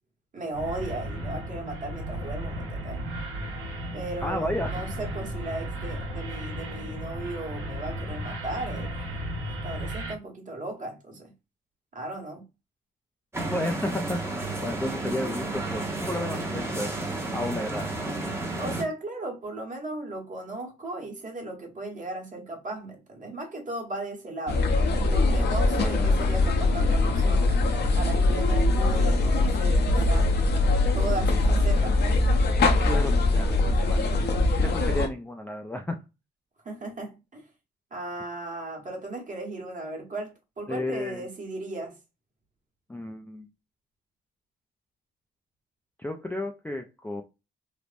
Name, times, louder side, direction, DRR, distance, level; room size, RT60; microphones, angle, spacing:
voice 1, 0.3-3.0 3.9-8.9 9.5-11.3 11.9-12.4 18.6-24.6 25.1-27.6 27.9-30.3 30.9-32.0 33.9-34.4 36.6-37.4 37.9-42.0, right 2 dB, 40° right, 1.2 m, -36 dB
sound 1, 0.5-10.1, right 1 dB, 85° right, 0.9 m, -34 dB
voice 2, 4.2-4.7 13.4-17.0 17.3-18.2 25.8-26.1 32.8-33.6 33.9-34.0 34.6-36.0 40.7-41.2 42.9-43.5 46.0-47.2, left 1 dB, 10° left, 0.3 m, -32 dB
sound 2, 13.3-18.8, right 2 dB, 15° right, 0.8 m, -32 dB
sound 3, 24.5-35.1, left 2 dB, 55° left, 0.6 m, -22 dB
3.3 x 2.0 x 2.5 m
cardioid pair, 90°, 20 cm